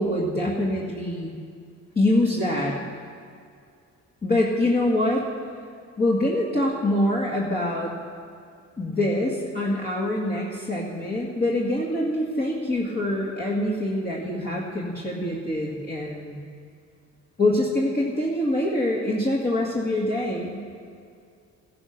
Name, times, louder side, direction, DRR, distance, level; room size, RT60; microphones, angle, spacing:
voice 1, 0.0-1.3 2.0-2.8 4.2-5.3 6.0-7.9 8.8-16.4 17.4-20.6, left 1 dB, 30° left, -5 dB, 2.0 m, -25 dB
16.0 x 10.5 x 6.0 m, 2.3 s
cardioid pair, 90°, 30 cm